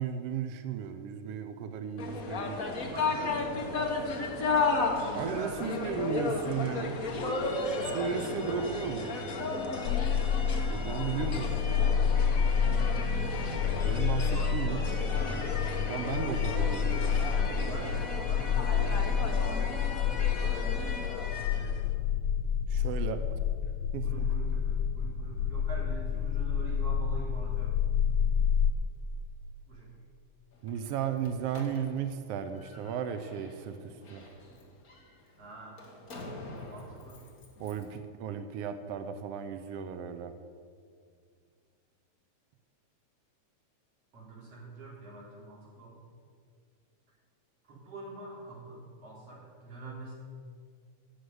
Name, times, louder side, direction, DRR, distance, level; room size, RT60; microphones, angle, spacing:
voice 1, 0.0-2.9 5.1-7.0 7.8-9.2 10.7-11.9 13.8-14.8 15.9-17.6 22.7-23.2 23.9-24.3 30.6-34.3 37.6-40.3, right 8 dB, 75° right, 8 dB, 1.4 m, -35 dB
sound 1, 2.0-21.8, left 3 dB, 55° left, 0.9 m, -33 dB
voice 2, 2.7-3.7 5.2-6.1 7.8-8.6 9.7-10.0 12.4-13.2 14.3-15.5 17.7-20.2 20.5-20.8 21.5-22.0 24.0-27.8 29.7-29.9 35.4-35.8 36.6-37.2 44.1-46.0 47.6-50.1, right 2 dB, 50° right, -5 dB, 4.6 m, -45 dB
sound 2, 9.9-28.7, left 7 dB, 85° left, 2.0 m, -29 dB
Slam, 30.5-38.0, left 2 dB, 35° left, 1.7 m, -49 dB
12.5 x 6.5 x 9.7 m, 2.1 s
omnidirectional pair, 3.3 m